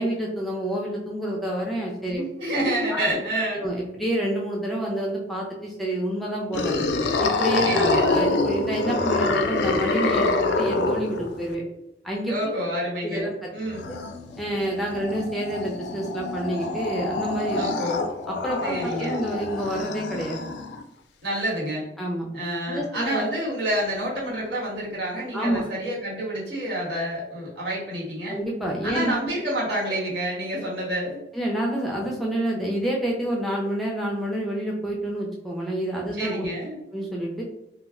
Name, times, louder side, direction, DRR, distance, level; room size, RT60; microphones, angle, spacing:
voice 1, 0.0-2.2 2.9-3.0 3.5-6.8 7.2-11.6 12.0-12.3 13.0-13.5 13.9-14.0 14.4-17.7 18.3-20.4 22.0-22.3 22.7-23.3 25.3-25.7 28.3-29.3 31.3-36.5 36.9-37.4, right 1 dB, ahead, -2 dB, 0.4 m, -28 dB
voice 2, 2.1-3.6 7.6-8.1 12.3-13.9 14.9-15.1 17.5-18.1 18.6-19.2 21.2-21.8 22.3-28.3 28.8-31.2 36.1-36.8, right 1 dB, 85° right, -5 dB, 1.3 m, -28 dB
sound 1, 6.5-11.5 13.7-20.8, left 3 dB, 80° left, 0.3 m, -26 dB
2.3 x 2.0 x 3.6 m, 0.86 s
head